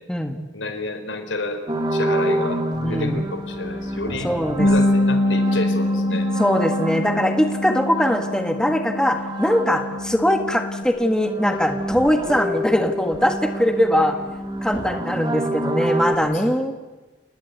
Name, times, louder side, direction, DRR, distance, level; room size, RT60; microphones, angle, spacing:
voice 1, 0.5-1.6 1.9-2.6 2.9-4.3 4.6-6.3 14.0-14.1 16.1-16.6, left 2 dB, 85° left, 7 dB, 4.1 m, -30 dB
sound 1, 1.7-10.3 10.5-16.2, right 1 dB, 25° right, 2.2 m, -29 dB
voice 2, 2.8-3.2 4.2-4.7 6.1-14.2 14.6-16.7, equal, 5° left, 5 dB, 1.6 m, -21 dB
Bass guitar, 4.6-10.8, left 1 dB, 40° left, 8.0 m, -24 dB
29.0 x 20.0 x 8.2 m, 1.2 s
head